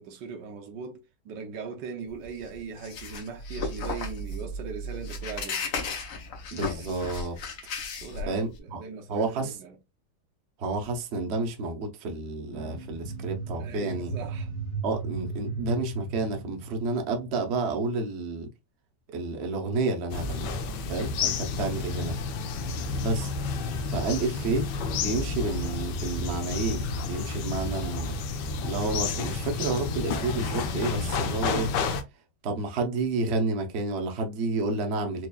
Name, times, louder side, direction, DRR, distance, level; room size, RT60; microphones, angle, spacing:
voice 1, 0.0-5.6 8.0-9.7 13.6-14.5, right 5 dB, 80° right, 1.4 m, -39 dB
sound 1, 2.1-8.6, left 3 dB, 55° left, 1.1 m, -35 dB
voice 2, 6.5-7.4 8.3-8.8 9.1-9.6 10.6-14.1 14.8-18.5 19.1-20.5 20.9-22.2 23.0-23.3 23.9-28.1 28.6-31.7 32.4-35.3, right 3 dB, 50° right, 0.8 m, -30 dB
sound 2, 12.5-17.6, right 4 dB, 35° left, 1.4 m, -36 dB
sound 3, 20.1-32.0, left 4 dB, 80° left, 1.3 m, -30 dB
4.6 x 2.9 x 2.3 m
omnidirectional pair, 1.9 m